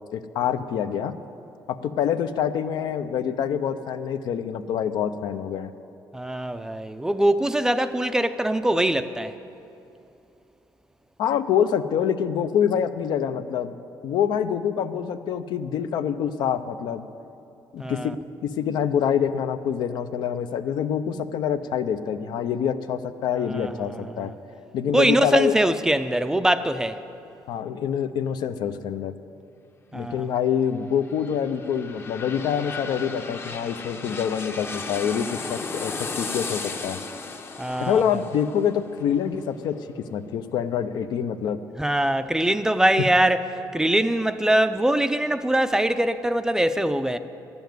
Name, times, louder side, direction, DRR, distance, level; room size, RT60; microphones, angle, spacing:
voice 1, 0.1-1.1 1.8-5.7 11.2-13.8 14.0-17.1 17.7-18.1 18.4-24.3 24.7-25.6 27.5-29.1 29.9-37.0 37.8-39.7 40.1-41.6, left 8 dB, 75° left, 0.6 m, -26 dB
voice 2, 6.1-9.3 17.8-18.1 23.5-24.3 24.9-27.0 29.9-30.3 37.6-38.0 41.8-43.4 43.7-47.2, right 1 dB, 10° right, 0.4 m, -23 dB
sound 1, 30.8-40.5 40.9-41.0, left 4 dB, 30° left, 0.8 m, -36 dB
12.0 x 7.0 x 9.3 m
cardioid pair, 115°, 8 cm